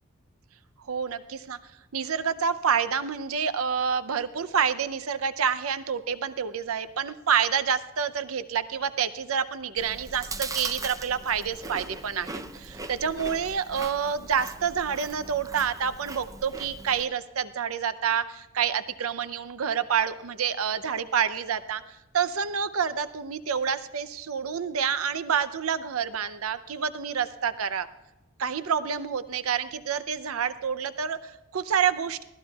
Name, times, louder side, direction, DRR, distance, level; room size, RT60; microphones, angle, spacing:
voice 1, 0.9-1.6 1.9-21.8 22.1-27.9 28.4-32.2, right 7 dB, 85° right, 12 dB, 0.6 m, -28 dB
Chewing mastication, 9.8-17.1, right 3 dB, 15° right, 0.6 m, -40 dB
22.5 x 16.0 x 2.3 m, 1.0 s
head